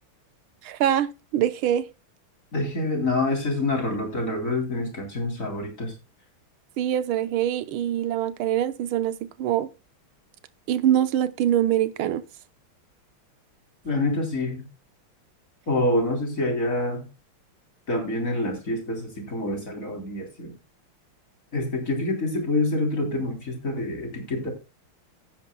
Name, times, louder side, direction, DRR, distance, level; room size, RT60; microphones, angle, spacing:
voice 1, 0.6-1.8 6.8-9.7 10.7-12.2, right 11 dB, 75° right, 1.7 m, -24 dB
voice 2, 2.5-5.9 13.8-14.7 15.7-17.1 17.9-20.5 21.5-24.5, left 2 dB, 35° left, 3.8 m, -26 dB
15.0 x 10.0 x 2.2 m
omnidirectional pair, 2.4 m